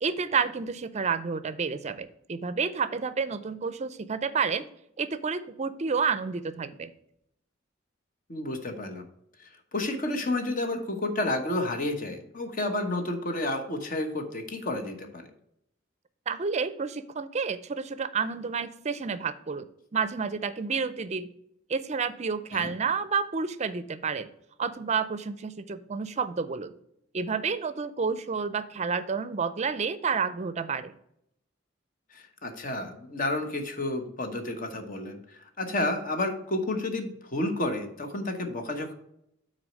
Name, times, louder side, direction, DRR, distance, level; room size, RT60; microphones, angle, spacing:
voice 1, 0.0-4.7 5.0-6.9 16.3-21.3 21.7-24.3 24.6-26.7 27.1-30.9, right 5 dB, 35° right, 13 dB, 0.5 m, -30 dB
voice 2, 8.3-9.0 9.4-15.3 22.5-22.7 32.1-38.9, left 2 dB, 45° left, 6 dB, 1.0 m, -31 dB
6.2 x 4.2 x 6.3 m, 0.76 s
head